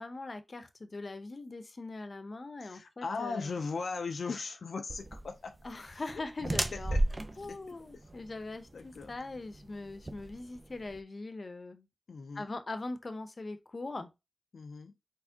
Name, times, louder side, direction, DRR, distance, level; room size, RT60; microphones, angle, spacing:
voice 1, 0.0-3.6 5.6-7.0 7.4-11.9 12.3-14.1, left 2 dB, 50° left, 0.7 m, -41 dB
voice 2, 2.6-5.5 6.7-7.0 7.5-7.6 7.9-8.0 8.7-9.1 12.1-12.5 14.5-14.9, left 4 dB, 85° left, 0.4 m, -38 dB
sound 1, 4.9-11.0, right 1 dB, 30° right, 0.6 m, -35 dB
4.3 x 3.3 x 2.7 m
wide cardioid pair, 65°, 0 cm